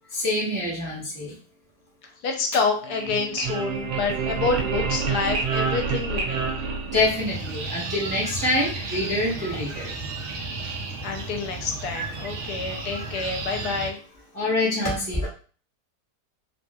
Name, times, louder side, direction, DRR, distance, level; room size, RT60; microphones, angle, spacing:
voice 1, 0.1-1.4 6.9-9.9 14.3-15.3, left 2 dB, 20° right, -5 dB, 0.5 m, -25 dB
voice 2, 2.0-6.5 11.0-14.0, left 4 dB, 80° left, 3 dB, 1.1 m, -28 dB
sound 1, 2.8-7.5, right 5 dB, 85° right, 1.2 m, -28 dB
sound 2, 6.9-13.9, right 3 dB, 70° right, 0.7 m, -33 dB
2.9 x 2.7 x 2.3 m, 0.39 s
omnidirectional pair, 1.7 m